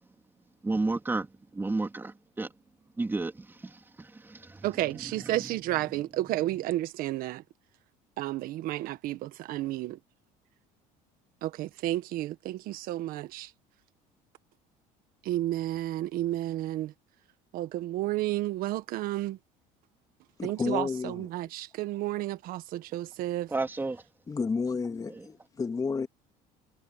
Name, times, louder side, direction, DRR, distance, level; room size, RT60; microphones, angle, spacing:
voice 1, 0.6-1.3 1.5-2.5 3.0-4.6 5.2-5.3 23.5-24.0, right 3 dB, 15° right, 3.4 m, -32 dB
voice 2, 4.6-7.4 8.2-10.0 11.4-13.5 15.2-16.9 17.5-19.4 20.4-23.5, right 15 dB, 65° right, 1.6 m, -32 dB
voice 3, 20.4-21.3 24.3-26.1, left 4 dB, 20° left, 2.5 m, -31 dB
cardioid pair, 120°, 16 cm